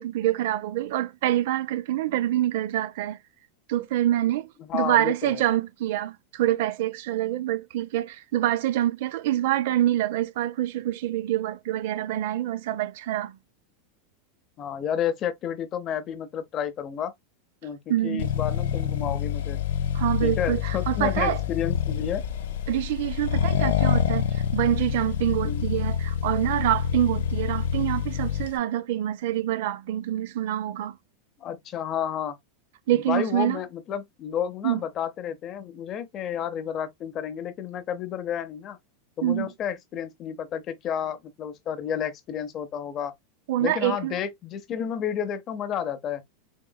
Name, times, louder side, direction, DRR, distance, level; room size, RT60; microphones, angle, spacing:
voice 1, 0.0-3.2 3.7-13.4 17.9-18.3 19.9-21.4 22.7-31.0 32.9-33.6 34.6-34.8 39.2-39.5 43.5-44.2, right 13 dB, 55° right, 0.5 m, -26 dB
voice 2, 4.6-5.4 14.6-17.1 17.6-19.6 20.2-22.2 25.4-25.7 31.4-32.4 32.9-38.8 39.2-43.1 43.6-46.2, left 9 dB, 25° left, 0.6 m, -31 dB
Accelerating revving vroom, 18.2-28.6, left 9 dB, 85° left, 0.7 m, -27 dB
3.9 x 3.6 x 2.2 m
supercardioid pair, 175°, 0 cm